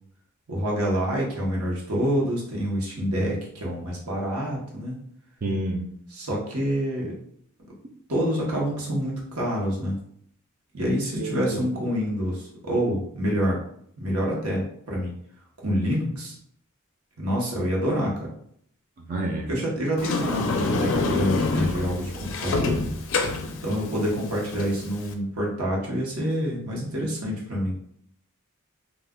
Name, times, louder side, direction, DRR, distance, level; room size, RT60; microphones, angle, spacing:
voice 1, 0.5-5.0 6.1-7.2 8.1-10.0 10.7-13.6 14.0-15.1 15.6-16.4 17.2-18.1 19.5-22.8 23.6-27.7, equal, 85° right, -3 dB, 0.9 m, -27 dB
voice 2, 5.4-5.8 11.2-11.7 19.1-19.5, right 2 dB, 40° right, -1 dB, 0.4 m, -28 dB
Sliding door, 20.0-25.1, left 3 dB, 65° left, 0.4 m, -27 dB
2.4 x 2.2 x 3.6 m, 0.67 s
head